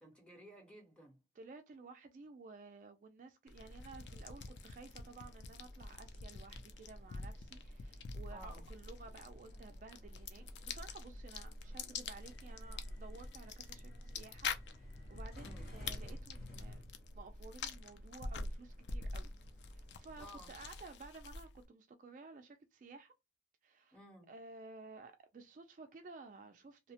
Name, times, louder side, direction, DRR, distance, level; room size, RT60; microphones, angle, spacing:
voice 1, 0.0-1.2 8.3-8.7 15.4-15.7 20.2-20.5 23.9-24.3, equal, 5° left, 0.9 m, -55 dB
voice 2, 1.4-14.5 14.8-16.8 17.2-19.3 19.7-23.1 23.6-24.0 24.3-26.9, right 3 dB, 45° right, 0.3 m, -54 dB
sound 1, 3.5-21.7, left 3 dB, 75° left, 0.4 m, -46 dB
sound 2, 3.5-20.5, left 1 dB, 60° left, 1.1 m, -57 dB
2.7 x 2.0 x 2.7 m
head